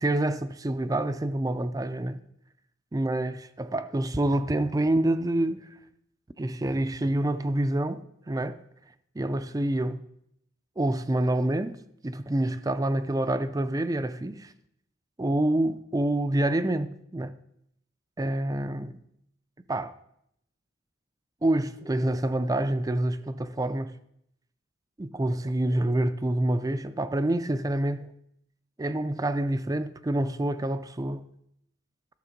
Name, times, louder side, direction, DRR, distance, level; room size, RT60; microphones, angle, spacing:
voice 1, 0.0-2.2 2.9-5.8 6.4-8.6 9.1-10.0 10.8-14.5 15.2-17.3 18.2-19.0 19.7-19.9 21.4-24.0 25.0-28.1 28.8-31.3, right 1 dB, 20° right, 0.4 m, -27 dB
12.5 x 6.7 x 5.1 m
head